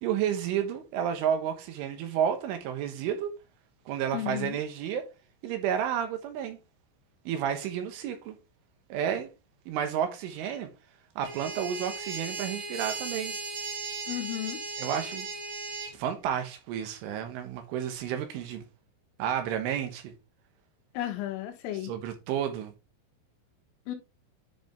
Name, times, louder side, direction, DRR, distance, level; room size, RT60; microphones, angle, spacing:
voice 1, 0.0-3.3 3.9-5.1 5.4-6.6 7.3-8.4 8.9-9.3 9.7-10.7 11.2-13.3 14.8-15.3 15.9-18.6 19.2-20.1 21.8-22.7, right 9 dB, 75° right, 3.7 m, -31 dB
voice 2, 4.1-4.6 14.1-14.6 20.9-21.9 23.9-24.0, left 13 dB, 80° left, 3.9 m, -33 dB
sound 1, 11.2-15.9, right 4 dB, 55° right, 2.9 m, -37 dB
10.5 x 5.2 x 3.5 m
omnidirectional pair, 6.0 m